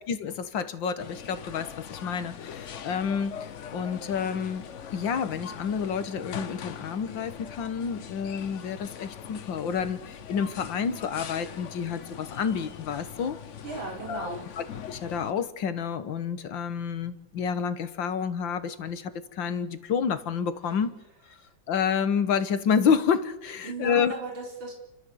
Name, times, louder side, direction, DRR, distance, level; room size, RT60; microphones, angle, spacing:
voice 1, 0.1-4.7 4.9-13.4 14.1-21.0 21.7-24.1, left 7 dB, 70° left, 11 dB, 2.0 m, -29 dB
sound 1, 1.0-15.3, left 8 dB, 50° left, 0.9 m, -42 dB
voice 2, 13.6-14.5 20.6-20.7 21.4-21.5 23.6-24.7, right 4 dB, 75° right, 0 dB, 4.9 m, -36 dB
29.5 x 13.0 x 7.9 m, 0.94 s
omnidirectional pair, 2.2 m